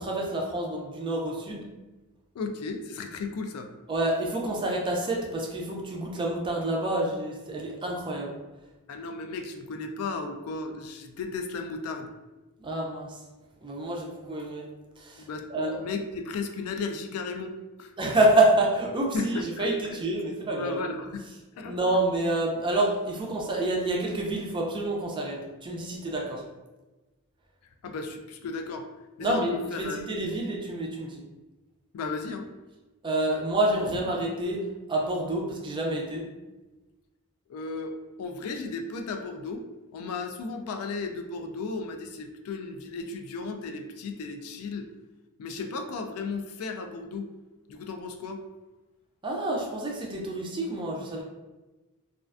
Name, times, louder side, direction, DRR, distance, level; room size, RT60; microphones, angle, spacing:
voice 1, 0.0-1.7 3.9-8.3 12.6-13.2 13.6-14.7 15.0-15.8 18.0-20.8 21.6-26.4 29.2-31.2 33.0-36.3 49.2-51.2, right 1 dB, 20° right, -1 dB, 0.4 m, -28 dB
voice 2, 2.3-3.7 8.9-12.1 15.2-17.5 17.8-17.9 19.1-20.0 20.5-21.3 21.6-21.8 27.8-28.9 29.2-30.0 31.9-32.5 37.5-39.6 39.9-44.9 45.4-47.3 47.7-48.4, left 3 dB, 75° left, 6 dB, 0.3 m, -35 dB
2.4 x 2.2 x 2.3 m, 1.1 s
head